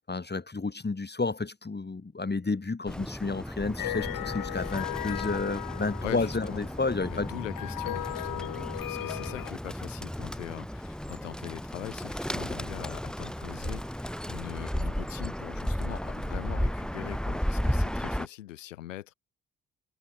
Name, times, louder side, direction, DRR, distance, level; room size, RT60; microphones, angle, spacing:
voice 1, 0.1-7.3, left 3 dB, 25° left, 6.4 m, -31 dB
Bird, 2.9-18.3, equal, ahead, 2.1 m, -34 dB
sound 1, 3.8-9.5, left 14 dB, 60° left, 1.6 m, -37 dB
voice 2, 6.0-6.6 7.1-19.1, left 14 dB, 85° left, 4.6 m, -42 dB
hypercardioid pair, 45°, 37 cm